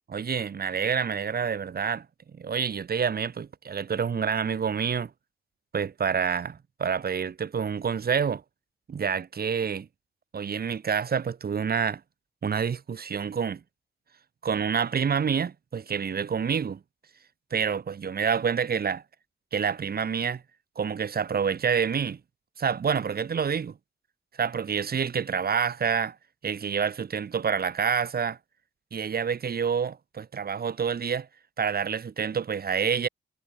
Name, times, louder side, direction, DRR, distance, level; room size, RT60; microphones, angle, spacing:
voice 1, 0.1-2.0 2.3-5.1 5.7-8.4 8.9-9.9 10.3-12.0 12.4-13.6 14.4-16.8 17.5-19.0 19.5-20.4 20.8-22.2 22.6-23.7 24.4-26.1 26.4-28.4 28.9-31.3 31.6-33.1, right 6 dB, 45° right, 2.9 m, -27 dB
wide cardioid pair, 160°, 21 cm